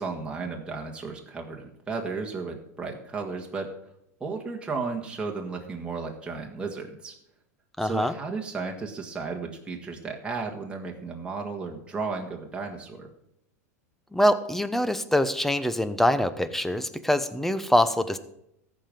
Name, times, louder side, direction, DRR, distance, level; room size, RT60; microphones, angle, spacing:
voice 1, 0.0-3.7 4.2-7.1 7.8-13.1, right 4 dB, 10° right, 0 dB, 1.8 m, -34 dB
voice 2, 7.8-8.1 14.1-18.2, left 1 dB, 5° left, 12 dB, 0.9 m, -24 dB
14.0 x 5.3 x 7.6 m, 0.78 s
hypercardioid pair, 100°, 8 cm